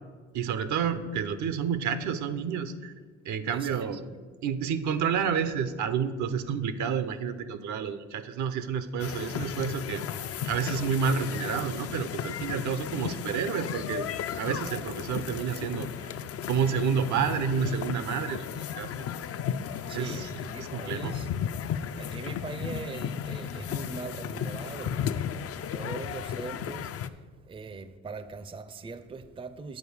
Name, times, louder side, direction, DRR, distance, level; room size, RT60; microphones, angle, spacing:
voice 1, 0.3-2.9 3.3-4.0 4.4-10.0 10.4-15.9 16.5-19.1 19.9-20.3 20.6-21.1, right 7 dB, 75° right, 0.7 m, -29 dB
voice 2, 3.5-3.9 19.9-21.3 22.0-26.9 27.5-29.8, right 4 dB, 20° right, 0.4 m, -41 dB
sound 1, 9.0-27.1, left 8 dB, 50° left, 0.4 m, -35 dB
8.3 x 4.4 x 7.0 m
cardioid pair, 90°, 30 cm